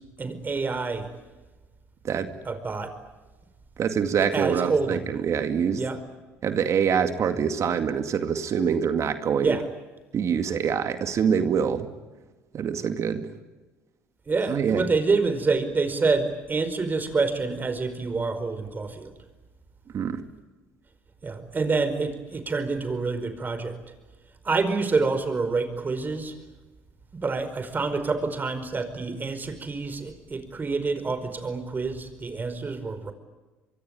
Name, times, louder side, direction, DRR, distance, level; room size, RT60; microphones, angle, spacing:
voice 1, 0.2-1.1 2.4-2.9 4.3-5.1 5.8-6.0 9.4-9.6 14.3-19.1 21.2-23.8 24.4-26.3 27.1-33.1, right 4 dB, 30° right, 11 dB, 4.9 m, -27 dB
voice 2, 3.8-5.8 6.4-9.6 10.1-11.9 12.5-13.3 14.5-14.8 19.9-20.2, right 7 dB, 50° right, 8 dB, 2.2 m, -25 dB
24.5 x 23.5 x 9.5 m, 1.2 s
supercardioid pair, 75°, 6 cm